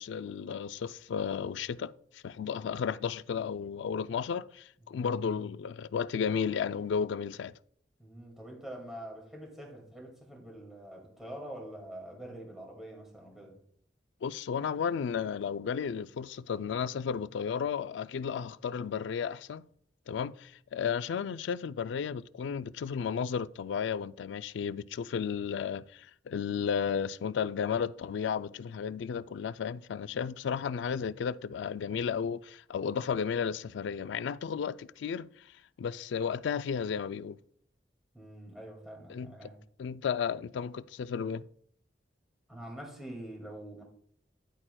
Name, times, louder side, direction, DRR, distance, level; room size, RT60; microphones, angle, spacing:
voice 1, 0.0-7.5 14.2-19.6 20.1-35.3 35.8-37.4 39.1-39.3 39.8-41.5, left 7 dB, 80° left, 0.3 m, -33 dB
voice 2, 8.0-13.6 38.1-39.6 42.5-43.8, right 1 dB, ahead, 2.1 m, -45 dB
10.0 x 8.6 x 2.2 m
head